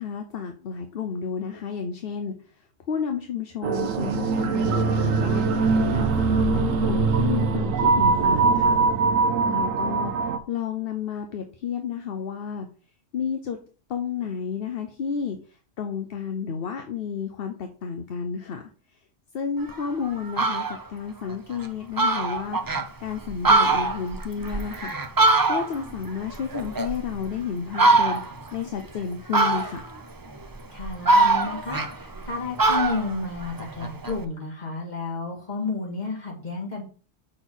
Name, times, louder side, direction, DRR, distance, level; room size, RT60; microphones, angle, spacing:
voice 1, 0.0-2.3 2.9-5.4 5.9-8.8 9.5-10.1 10.5-12.7 13.1-13.6 13.9-15.4 15.8-18.6 19.3-22.6 23.0-24.9 25.5-28.2 28.5-29.8, left 6 dB, 55° left, 5 dB, 0.8 m, -31 dB
sound 1, 3.6-10.4, right 4 dB, 85° right, 1.1 m, -22 dB
Fowl, 19.7-19.8 20.2-20.8 21.3-21.4 21.6-21.7 22.0-22.9 23.3-25.9 26.3-27.3 27.7-28.4 29.3-30.0 30.5-32.3 32.6-34.2, right 3 dB, 35° right, 0.3 m, -22 dB
voice 2, 30.7-36.8, left 3 dB, 35° left, -2 dB, 2.2 m, -31 dB
6.1 x 3.9 x 6.1 m, 0.40 s
omnidirectional pair, 1.3 m